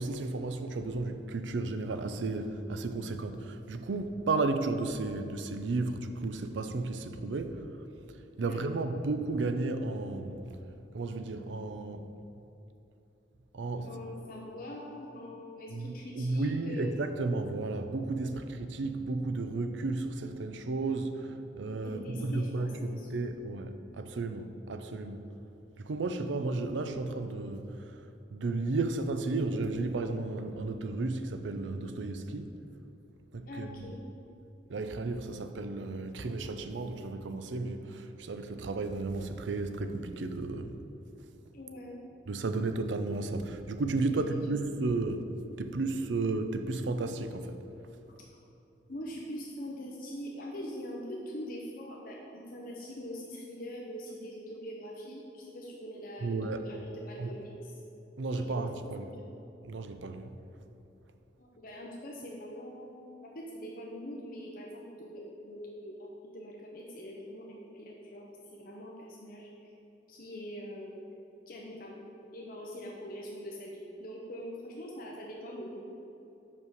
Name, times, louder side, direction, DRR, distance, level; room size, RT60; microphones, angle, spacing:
voice 1, 0.0-7.6 8.4-10.6 10.9-12.0 13.5-13.9 15.7-25.2 25.8-27.8 28.3-32.5 33.3-33.8 34.7-40.8 42.3-45.2 45.6-47.6 56.2-56.6 57.2-57.3 58.2-59.1 59.6-60.4, right 3 dB, 85° right, 8 dB, 0.5 m, -33 dB
voice 2, 8.4-8.8 13.8-16.9 18.2-18.3 21.8-23.1 24.4-24.5 33.5-34.0 41.5-42.0 43.9-44.6 48.9-57.8 58.4-58.6 59.0-59.3 61.4-68.2 68.5-69.7 70.1-71.0 71.5-72.0 72.3-75.8, equal, 50° left, -2 dB, 0.7 m, -43 dB
5.4 x 5.4 x 6.4 m, 2.9 s
head